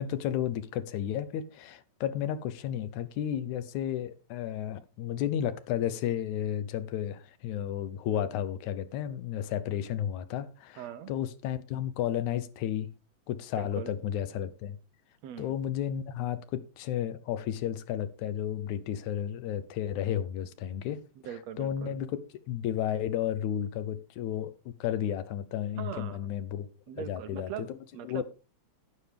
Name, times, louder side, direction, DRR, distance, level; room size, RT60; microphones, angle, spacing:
voice 1, 0.0-12.9 13.3-14.8 15.4-21.0 21.6-22.2 22.5-26.7 27.0-27.8 28.0-28.2, left 10 dB, 85° left, 2.3 m, -32 dB
voice 2, 10.8-11.1 13.6-14.0 15.2-15.6 21.2-22.0 25.8-26.2 26.9-28.2, right 10 dB, 75° right, 1.8 m, -41 dB
11.0 x 9.6 x 3.5 m
omnidirectional pair, 3.3 m